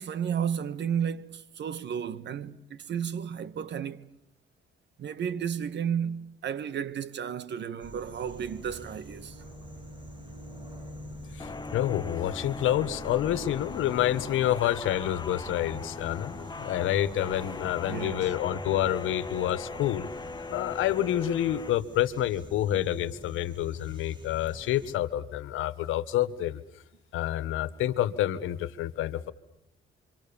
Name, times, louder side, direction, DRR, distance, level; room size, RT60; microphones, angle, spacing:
voice 1, 0.0-4.1 5.0-9.4 17.9-18.3, right 8 dB, 65° right, 1.6 m, -33 dB
sound 1, 7.8-25.0, right 1 dB, 25° right, 6.8 m, -46 dB
voice 2, 11.3-20.1 20.5-26.6 27.1-29.3, left 12 dB, 85° left, 1.6 m, -28 dB
sound 2, 11.4-21.7, left 3 dB, 20° left, 1.4 m, -40 dB
28.5 x 25.0 x 7.2 m
cardioid pair, 90°, 20 cm